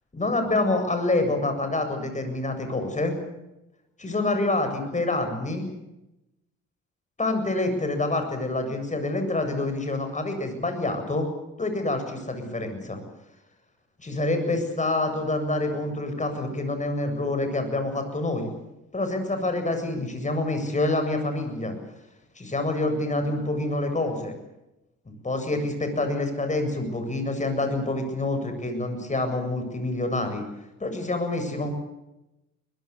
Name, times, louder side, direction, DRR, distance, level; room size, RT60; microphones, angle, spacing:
voice 1, 0.1-3.1 4.0-5.7 7.2-11.3 11.6-13.0 14.0-18.5 18.9-21.8 22.4-24.3 25.2-30.4 30.8-31.7, left 2 dB, 25° left, 7 dB, 7.7 m, -27 dB
22.5 x 21.5 x 8.5 m, 0.93 s
cardioid pair, 90°, 30 cm